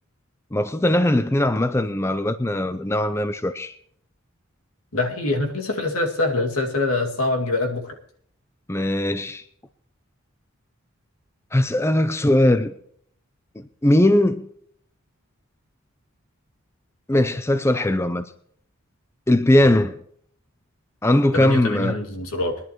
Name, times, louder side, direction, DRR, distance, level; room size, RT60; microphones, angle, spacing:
voice 1, 0.5-3.7 8.7-9.4 11.5-12.7 13.8-14.5 17.1-18.3 19.3-19.9 21.0-22.0, left 1 dB, 10° left, 0.5 m, -20 dB
voice 2, 4.9-7.9 19.6-19.8 21.3-22.6, left 2 dB, 90° left, 2.2 m, -24 dB
22.0 x 11.0 x 3.1 m
head